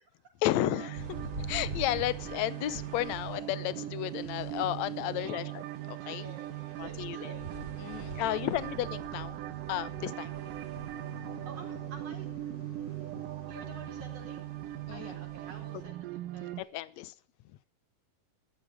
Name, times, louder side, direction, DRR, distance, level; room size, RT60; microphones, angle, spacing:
voice 1, 0.4-1.2 1.5-5.6 5.9-6.3 6.8-7.4 7.8-9.4 9.7-10.4 14.9-15.1 16.6-17.1, left 14 dB, 70° left, 1.8 m, -33 dB
sound 1, 0.5-16.6, right 14 dB, 80° right, 2.5 m, -40 dB
sound 2, 0.9-15.8, right 2 dB, 25° right, 3.8 m, -47 dB
voice 2, 5.0-5.6 6.0-7.5 8.2-8.7 11.4-12.3 13.5-14.5 14.9-16.7, right 4 dB, 50° right, 5.1 m, -50 dB
sound 3, 10.3-16.2, left 1 dB, 30° left, 3.6 m, -51 dB
14.5 x 12.5 x 4.8 m
omnidirectional pair, 3.8 m